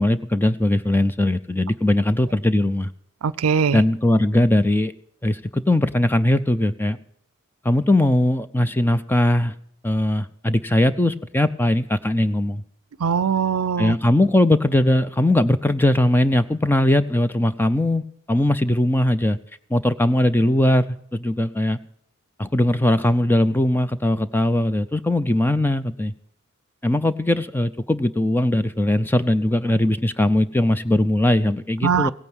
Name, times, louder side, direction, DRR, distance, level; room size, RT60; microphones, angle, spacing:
voice 1, 0.0-2.9 3.7-4.9 5.2-7.0 7.6-9.5 9.8-12.6 13.8-19.4 19.7-20.8 21.1-21.8 22.4-26.1 26.8-32.1, left 1 dB, 10° left, 12 dB, 0.5 m, -20 dB
voice 2, 3.2-3.8 13.0-14.0 31.8-32.1, right 6 dB, 80° right, 20 dB, 0.5 m, -21 dB
17.0 x 9.0 x 7.9 m, 0.66 s
head